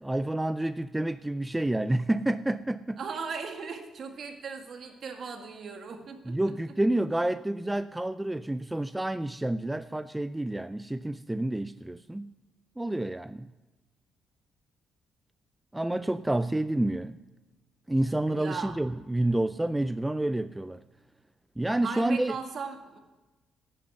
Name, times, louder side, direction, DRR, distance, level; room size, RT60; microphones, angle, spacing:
voice 1, 0.0-3.0 6.3-12.3 12.8-13.5 15.7-17.2 17.9-20.8 21.6-22.4, right 1 dB, 10° right, 13 dB, 0.4 m, -29 dB
voice 2, 3.0-6.4 18.3-18.8 21.8-23.0, right 5 dB, 55° right, 4 dB, 1.9 m, -37 dB
11.0 x 9.0 x 6.6 m, 1.1 s
cardioid pair, 90°, 0 cm